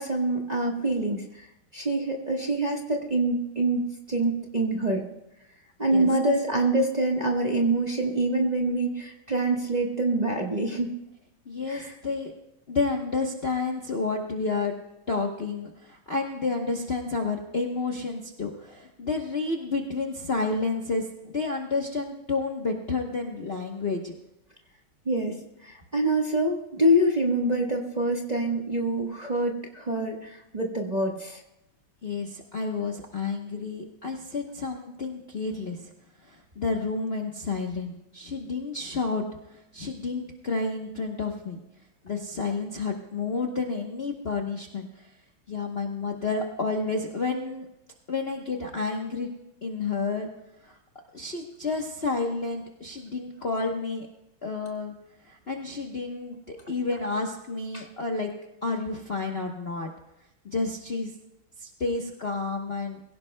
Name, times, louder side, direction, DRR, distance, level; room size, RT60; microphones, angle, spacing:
voice 1, 0.0-1.5 1.7-5.0 5.8-11.0 11.7-11.9 25.0-31.4 57.7-57.9, right 1 dB, 25° right, 0 dB, 1.2 m, -26 dB
voice 2, 11.5-12.3 12.7-14.7 15.1-24.1 32.0-35.9 36.2-39.2 39.5-41.6 42.0-45.1 45.5-47.7 48.1-49.3 49.6-50.3 50.7-50.8 51.1-54.1 54.4-54.9 55.2-58.3 58.6-59.9 60.4-61.1 61.6-63.0, left 3 dB, 40° left, 0 dB, 0.9 m, -30 dB
23.0 x 16.0 x 2.2 m, 0.92 s
omnidirectional pair, 2.3 m